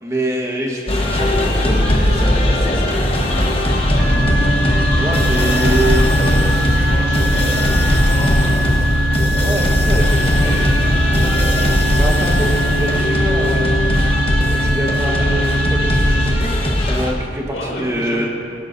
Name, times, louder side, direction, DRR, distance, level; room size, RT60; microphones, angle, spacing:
voice 1, 0.0-2.9 5.0-6.1 9.4-10.5 11.7-13.7 14.6-18.3, right 1 dB, 15° right, -1 dB, 1.3 m, -25 dB
sound 1, 0.9-17.1, left 1 dB, 35° left, 1.2 m, -18 dB
voice 2, 3.9-4.2 5.8-8.8 9.9-11.4 12.0-12.3 17.5-18.2, left 1 dB, 85° left, -5 dB, 2.8 m, -31 dB
sound 2, 4.0-16.2, right 1 dB, 50° left, 2.1 m, -20 dB
17.0 x 13.0 x 2.7 m, 2.3 s
head